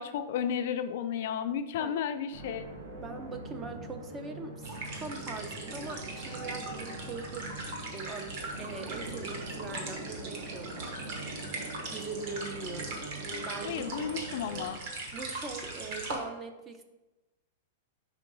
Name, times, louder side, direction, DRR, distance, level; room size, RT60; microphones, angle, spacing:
voice 1, 0.0-2.6 13.6-14.8, left 8 dB, 50° left, 9 dB, 0.4 m, -33 dB
sound 1, 2.3-14.7, right 2 dB, 75° right, 1.4 m, -43 dB
voice 2, 2.9-7.4 7.9-11.0 11.9-13.0 13.5-13.9 15.1-16.8, right 4 dB, 15° right, 7 dB, 0.4 m, -42 dB
sound 2, 4.6-16.2, right 2 dB, 45° right, 1.1 m, -40 dB
4.9 x 3.7 x 5.3 m, 1.0 s
supercardioid pair, 170°, 0 cm